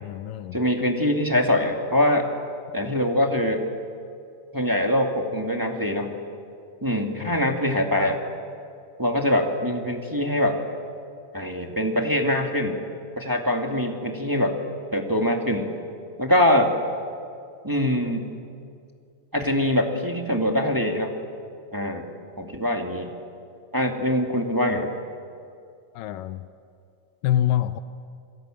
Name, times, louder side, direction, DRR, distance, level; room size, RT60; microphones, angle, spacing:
voice 1, 0.0-0.6 7.2-7.4 26.0-26.5 27.2-27.8, left 12 dB, 85° left, 11 dB, 2.5 m, -26 dB
voice 2, 0.5-2.3 2.7-3.6 4.5-6.2 6.8-8.2 9.0-10.6 11.3-12.8 13.1-14.6 14.9-15.7 16.2-16.7 17.6-18.3 19.3-21.1 21.7-22.0 22.4-23.1 23.7-24.9, left 1 dB, 10° right, 2 dB, 1.5 m, -23 dB
29.0 x 22.0 x 9.0 m, 2.3 s
omnidirectional pair, 3.8 m